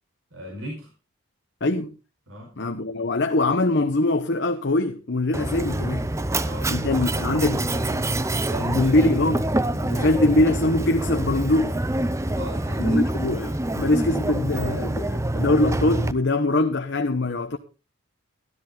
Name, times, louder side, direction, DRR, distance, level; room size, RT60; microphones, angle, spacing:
voice 1, 0.3-0.9 2.3-2.7 6.3-10.2 10.5-10.6 12.3-13.2, equal, 60° right, 4.9 m, -37 dB
voice 2, 1.6-1.9 2.6-6.1 6.7-7.6 8.7-9.4 9.9-11.8 12.8-17.6, left 2 dB, 50° left, 1.0 m, -23 dB
Mechanisms, 5.3-16.1, right 1 dB, 15° right, 0.5 m, -26 dB
13.0 x 13.0 x 3.8 m
head